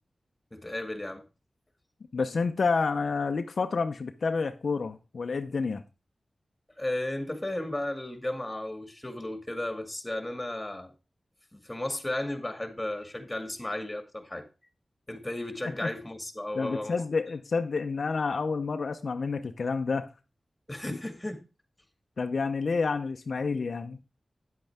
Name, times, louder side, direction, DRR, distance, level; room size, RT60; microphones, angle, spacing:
voice 1, 0.5-1.2 6.8-10.9 11.5-14.5 15.1-17.0 20.7-21.4, left 1 dB, 20° left, 2.0 m, -34 dB
voice 2, 2.1-5.8 15.8-15.9 16.5-20.1 22.2-24.0, left 4 dB, 75° left, 0.7 m, -29 dB
9.6 x 7.9 x 3.5 m
cardioid pair, 55°, 0 cm